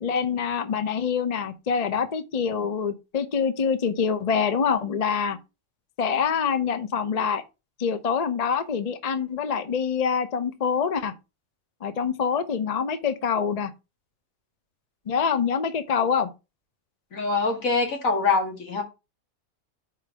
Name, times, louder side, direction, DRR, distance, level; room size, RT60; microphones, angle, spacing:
voice 1, 0.0-5.4 6.0-7.4 7.8-11.1 11.8-13.7 15.1-16.3, left 6 dB, 40° left, 0.6 m, -25 dB
voice 2, 17.1-18.8, left 4 dB, 75° left, 2.2 m, -24 dB
5.2 x 4.7 x 5.9 m
omnidirectional pair, 1.4 m